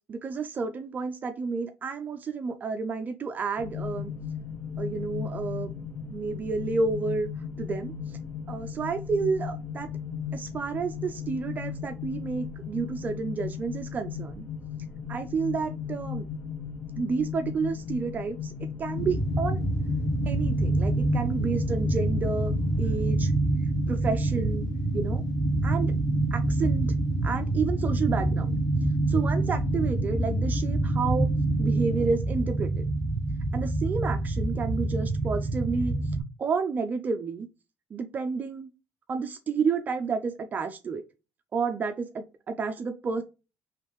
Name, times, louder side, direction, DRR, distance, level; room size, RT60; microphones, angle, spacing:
voice 1, 0.1-4.1 4.8-5.7 6.1-7.3 7.6-7.9 8.5-9.9 10.3-14.5 15.1-16.3 17.0-18.5 18.8-19.6 20.3-22.5 22.8-23.3 23.9-24.7 24.9-25.2 25.6-25.9 26.3-26.9 27.2-28.6 29.1-31.3 31.6-32.8 33.5-35.9 36.4-37.5 37.9-38.7 39.1-41.0 41.5-43.2, right 4 dB, 30° right, 6 dB, 0.5 m, -30 dB
sound 1, 3.6-23.1, left 7 dB, 35° left, 1.2 m, -36 dB
sound 2, 18.9-36.2, right 2 dB, 80° left, 2.1 m, -26 dB
5.0 x 3.2 x 3.1 m, 0.29 s
cardioid pair, 140°, 5 cm